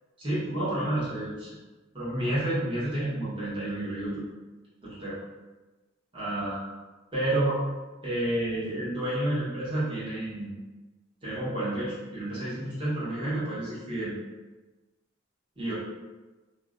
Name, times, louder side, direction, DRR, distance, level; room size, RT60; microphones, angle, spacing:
voice 1, 0.2-1.6 1.9-4.2 4.8-5.2 6.1-6.7 7.1-7.6 8.0-10.5 11.2-14.1 15.6-15.7, right 1 dB, 25° right, -11 dB, 1.0 m, -30 dB
2.5 x 2.0 x 2.4 m, 1.2 s
head